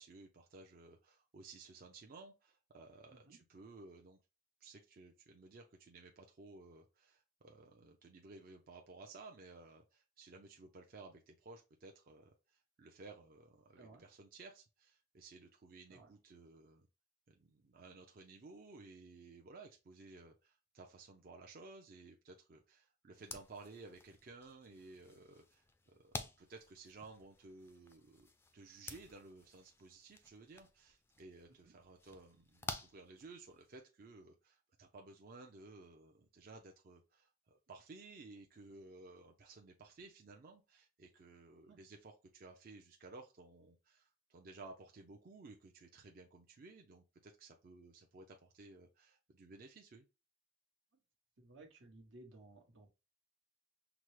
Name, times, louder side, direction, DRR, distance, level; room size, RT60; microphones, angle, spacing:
voice 1, 0.0-4.2 4.6-16.9 17.3-50.0, right 3 dB, 50° right, 0.5 m, -56 dB
sound 1, 23.1-33.8, left 3 dB, 15° left, 0.3 m, -52 dB
voice 2, 51.4-52.9, right 2 dB, 80° right, 1.0 m, -58 dB
5.8 x 2.0 x 3.2 m
head